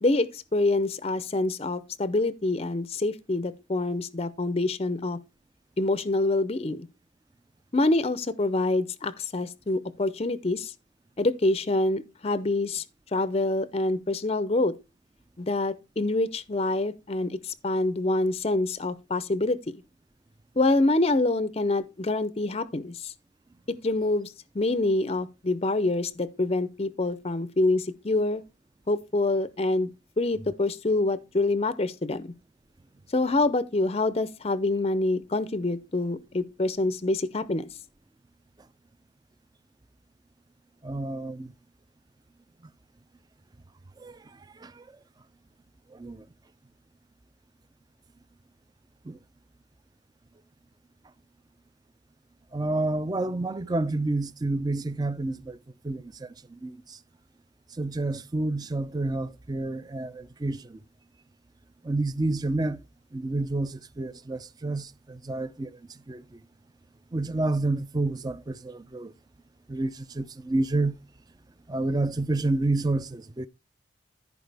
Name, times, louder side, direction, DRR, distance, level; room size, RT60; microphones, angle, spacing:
voice 1, 0.0-5.2 5.8-6.9 7.7-10.7 11.2-12.8 13.1-14.7 15.4-19.6 20.6-23.1 23.8-28.4 28.9-29.9 30.2-32.2 33.1-37.6, left 2 dB, 30° left, 0.5 m, -26 dB
voice 2, 40.8-41.5 44.0-44.1 44.6-44.7 45.9-46.2 49.1-49.2 52.5-55.6 55.8-56.8 57.8-60.8 61.8-62.8 63.1-65.7 66.1-66.2 67.1-69.1 69.7-71.0 71.7-73.5, right 2 dB, 20° right, 0.4 m, -29 dB
14.5 x 4.8 x 3.4 m
head